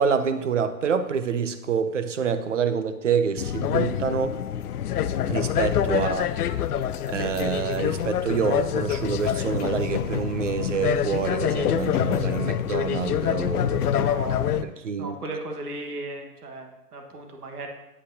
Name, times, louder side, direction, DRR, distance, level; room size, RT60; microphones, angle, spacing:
voice 1, 0.0-4.4 5.3-6.3 7.1-13.9 14.6-15.2, right 6 dB, 50° right, 10 dB, 0.6 m, -27 dB
sound 1, 3.4-14.6, left 9 dB, 70° left, 0.5 m, -26 dB
voice 2, 14.0-14.5 15.0-17.7, right 2 dB, 70° right, 3 dB, 1.5 m, -36 dB
8.5 x 7.5 x 2.8 m, 0.94 s
hypercardioid pair, 175°, 48 cm